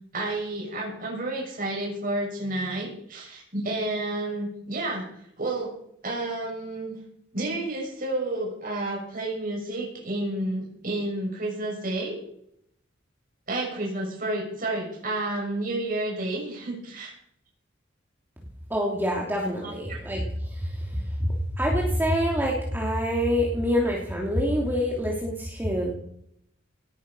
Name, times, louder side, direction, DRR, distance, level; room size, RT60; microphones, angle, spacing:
voice 1, 0.1-5.0 5.4-5.7 6.0-7.0 7.3-12.2 13.5-17.1 19.6-20.0, right 2 dB, 45° right, -2 dB, 6.5 m, -30 dB
voice 2, 18.7-25.9, equal, 10° right, -2 dB, 2.9 m, -26 dB
18.0 x 11.5 x 5.5 m, 0.71 s
head